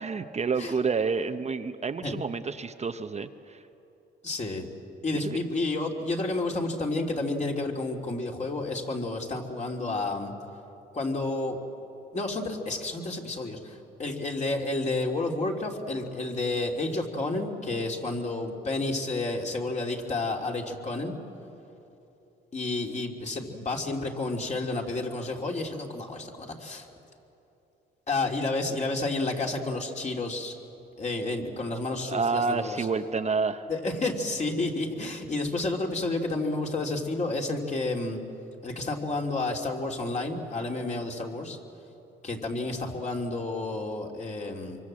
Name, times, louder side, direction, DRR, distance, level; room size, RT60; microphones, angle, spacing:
voice 1, 0.0-3.6 5.1-5.4 32.1-33.7, right 4 dB, 35° right, 8 dB, 0.8 m, -29 dB
voice 2, 4.2-4.7 5.0-10.3 10.9-11.6 12.1-21.1 22.5-26.9 28.1-30.6 31.0-32.9 33.7-38.2 38.6-41.6 42.2-44.8, left 2 dB, 35° left, 1 dB, 3.1 m, -30 dB
26.0 x 24.0 x 7.6 m, 3.0 s
cardioid pair, 90°, 20 cm